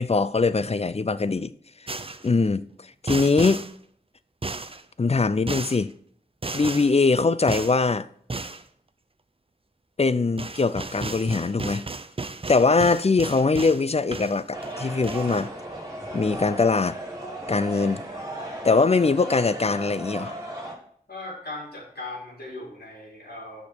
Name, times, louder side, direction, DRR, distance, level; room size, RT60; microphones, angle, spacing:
voice 1, 0.0-1.5 2.2-2.7 3.0-3.6 5.0-5.9 6.5-8.1 10.0-11.8 12.5-15.5 16.1-17.0 17.5-18.0 18.6-20.3, left 4 dB, 40° left, 0.4 m, -22 dB
sound 1, 1.9-2.3 3.1-3.7 4.4-4.8 5.5-5.8 6.4-6.9 7.5-7.8 8.3-8.6 10.0-10.1 10.4-13.8 14.1-14.7 15.0-15.5, right 3 dB, 35° right, 0.5 m, -34 dB
sound 2, 14.5-20.8, right 1 dB, 20° right, 2.2 m, -36 dB
voice 2, 21.1-23.7, left 2 dB, 75° left, 3.4 m, -38 dB
6.7 x 5.2 x 5.8 m
wide cardioid pair, 45°, 17 cm